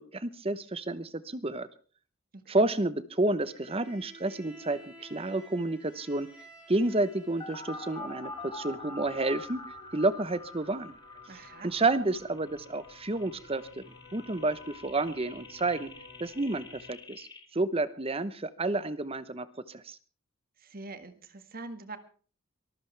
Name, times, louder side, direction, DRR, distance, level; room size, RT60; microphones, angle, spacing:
voice 1, 0.0-1.7 2.5-6.3 6.7-9.6 9.9-10.9 11.6-15.9 16.2-20.0, right 2 dB, 25° right, 14 dB, 0.9 m, -30 dB
voice 2, 2.3-2.7 11.3-11.7 20.6-22.0, right 3 dB, 45° right, 9 dB, 1.7 m, -44 dB
Bowed string instrument, 3.4-9.1, equal, 5° right, 5.6 m, -53 dB
sound 1, 7.1-16.9, left 3 dB, 50° left, 2.4 m, -54 dB
sound 2, 7.4-17.4, left 2 dB, 20° left, 3.4 m, -45 dB
24.0 x 14.5 x 3.4 m, 0.40 s
head